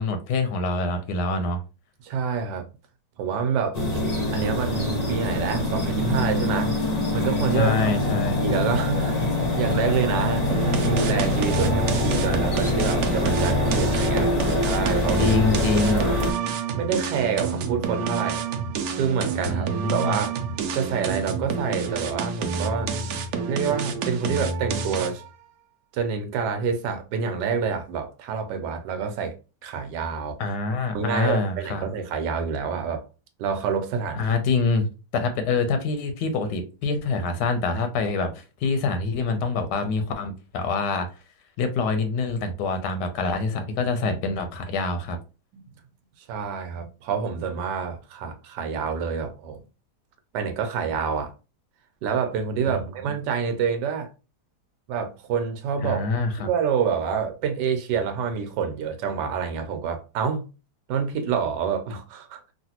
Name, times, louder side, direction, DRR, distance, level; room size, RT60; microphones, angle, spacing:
voice 1, 0.0-1.6 7.5-8.4 15.2-16.0 19.5-20.2 30.4-31.9 34.2-34.9 35.1-41.1 41.6-45.2 52.7-52.8 55.8-56.5, left 3 dB, 90° left, 1.2 m, -25 dB
voice 2, 2.0-2.7 3.2-6.7 7.1-14.3 14.6-16.2 16.7-18.4 19.0-20.3 20.7-22.9 23.5-25.2 25.9-29.3 29.6-30.4 30.9-33.0 33.4-34.2 45.5-45.7 46.2-49.6 50.3-51.3 52.0-54.1 54.9-56.1 56.4-60.5 60.9-62.4, right 6 dB, 90° right, 1.2 m, -27 dB
sound 1, 3.7-16.3, left 2 dB, 35° left, 0.6 m, -24 dB
sound 2, 10.5-25.3, right 5 dB, 70° right, 1.0 m, -29 dB
3.2 x 2.5 x 2.8 m
omnidirectional pair, 1.8 m